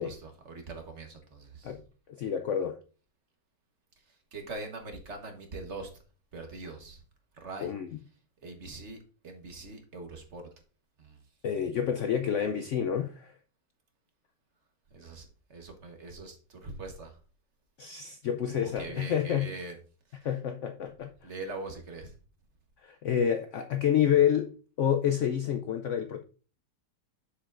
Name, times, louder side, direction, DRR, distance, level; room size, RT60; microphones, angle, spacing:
voice 1, 0.0-1.8 4.3-5.9 6.3-7.0 7.4-7.7 8.4-10.5 11.0-11.2 14.9-17.1 18.5-19.7 20.1-20.2 21.2-22.1, right 3 dB, 45° right, 1.3 m, -42 dB
voice 2, 2.2-2.8 7.6-7.9 11.4-13.3 17.8-19.5 20.2-21.1 22.8-24.5 24.8-26.2, left 9 dB, 90° left, 0.6 m, -28 dB
7.1 x 6.9 x 2.4 m
omnidirectional pair, 1.9 m